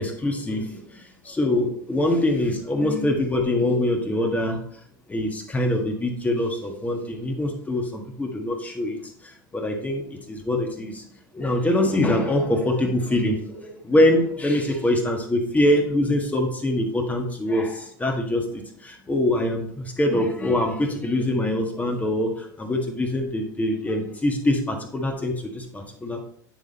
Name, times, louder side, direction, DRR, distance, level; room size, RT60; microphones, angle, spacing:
voice 1, 0.0-4.6 5.1-9.0 9.2-11.0 11.3-26.2, left 1 dB, 15° left, 2 dB, 1.6 m, -24 dB
9.1 x 3.5 x 4.2 m, 0.65 s
hypercardioid pair, 85°, 11 cm